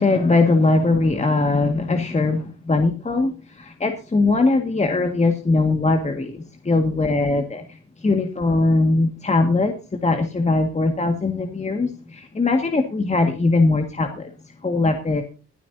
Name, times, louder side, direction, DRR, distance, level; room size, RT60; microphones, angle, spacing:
voice 1, 0.0-14.3 14.6-15.2, left 3 dB, 20° left, 5 dB, 1.8 m, -20 dB
21.0 x 12.0 x 2.7 m, 0.34 s
cardioid pair, 90°, 30 cm